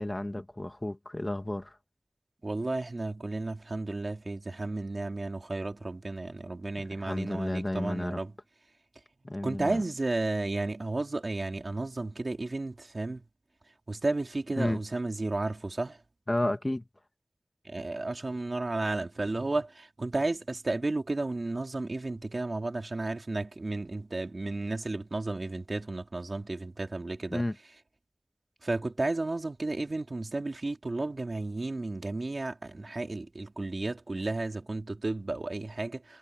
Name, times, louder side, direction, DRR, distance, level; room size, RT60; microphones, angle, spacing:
voice 1, 0.0-1.8 6.8-8.2 9.2-9.8 14.6-14.8 16.3-16.8 27.3-27.6, left 1 dB, 30° left, 1.8 m, -32 dB
voice 2, 2.4-8.3 9.4-13.2 13.9-16.0 17.6-27.4 28.6-36.2, right 2 dB, 70° right, 3.0 m, -33 dB
wide cardioid pair, 55°, 0 cm